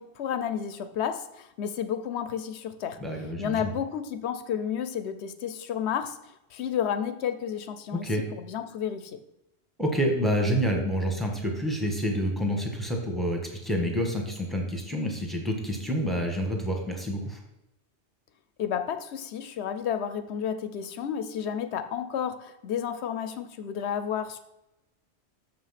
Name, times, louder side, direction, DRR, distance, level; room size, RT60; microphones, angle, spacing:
voice 1, 0.0-3.0 3.4-6.2 6.5-8.1 8.4-9.2 18.6-24.4, left 8 dB, 70° left, 10 dB, 0.9 m, -31 dB
voice 2, 3.0-3.7 7.9-8.2 9.8-17.4, equal, ahead, 1 dB, 1.3 m, -28 dB
6.7 x 5.8 x 5.8 m, 0.91 s
omnidirectional pair, 1.2 m